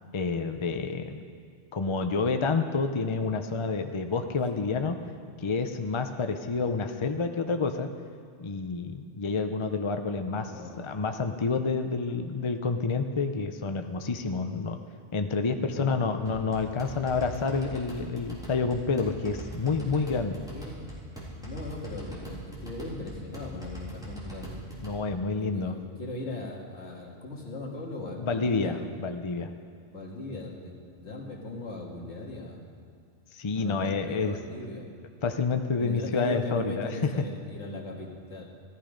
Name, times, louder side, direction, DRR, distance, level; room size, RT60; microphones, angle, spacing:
voice 1, 0.1-1.2 1.7-5.0 5.4-7.9 8.4-10.5 10.8-14.8 15.1-20.4 24.8-25.7 28.2-29.5 33.3-34.4 35.2-36.9, left 4 dB, 35° left, 6 dB, 0.5 m, -29 dB
voice 2, 10.5-10.8 15.6-16.0 20.5-20.9 21.4-24.6 25.3-28.8 29.9-32.6 33.5-34.9 35.8-38.5, left 2 dB, 65° left, -2 dB, 2.2 m, -39 dB
sound 1, 16.3-25.0, right 1 dB, 5° right, 3.3 m, -42 dB
15.0 x 13.0 x 5.1 m, 2.4 s
omnidirectional pair, 1.3 m